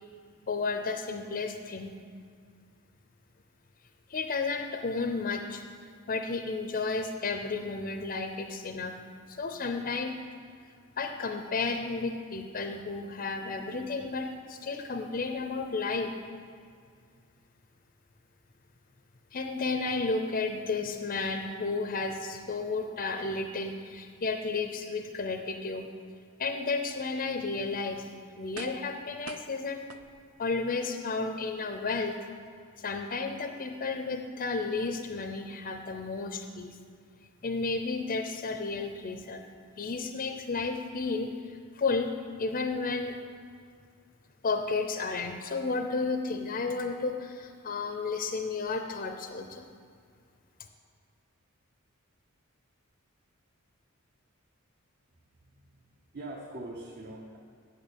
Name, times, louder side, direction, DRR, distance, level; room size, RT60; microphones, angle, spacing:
voice 1, 0.5-1.9 4.1-5.6 6.1-9.0 9.3-10.2 11.0-16.1 19.3-25.9 26.4-28.1 28.4-29.8 30.4-32.2 32.8-36.8 37.4-39.4 39.8-41.3 41.7-42.1 42.4-43.2 44.4-49.7, left 4 dB, 40° left, 6 dB, 0.6 m, -32 dB
sound 1, 28.5-29.0 29.3-30.5 31.0-31.1, right 6 dB, 65° right, 0.5 m, -46 dB
voice 2, 55.4-57.4, right 2 dB, 50° right, -2 dB, 1.0 m, -43 dB
9.0 x 6.5 x 8.4 m, 2.2 s
head